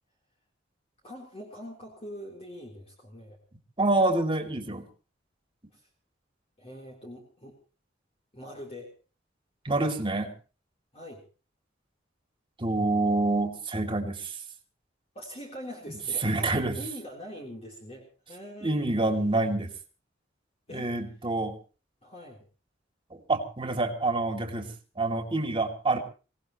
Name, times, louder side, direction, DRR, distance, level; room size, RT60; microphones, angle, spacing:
voice 1, 1.0-3.4 5.7-5.9 6.6-7.6 8.3-8.9 10.9-11.2 15.1-19.4 20.7-21.0 22.0-22.4, equal, 35° left, 0 dB, 3.6 m, -43 dB
voice 2, 3.8-4.9 9.6-10.3 12.6-14.4 16.2-16.8 18.6-19.7 20.7-21.6 23.1-26.0, right 2 dB, 25° right, 4 dB, 2.7 m, -27 dB
25.0 x 17.5 x 3.1 m, 0.36 s
head